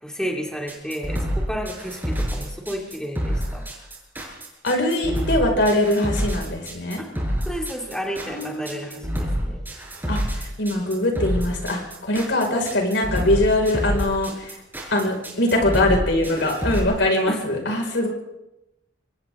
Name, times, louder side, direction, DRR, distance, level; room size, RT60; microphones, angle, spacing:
voice 1, 0.0-3.6 7.0-7.1 7.5-9.6 12.5-12.6 17.3-17.4, equal, 5° left, 0 dB, 2.8 m, -32 dB
sound 1, 0.7-16.8, equal, 10° right, 6.9 m, -27 dB
voice 2, 4.6-7.0 8.3-9.1 10.1-14.5 14.9-18.1, left 1 dB, 70° left, 1 dB, 5.9 m, -22 dB
28.0 x 24.5 x 3.9 m, 0.92 s
head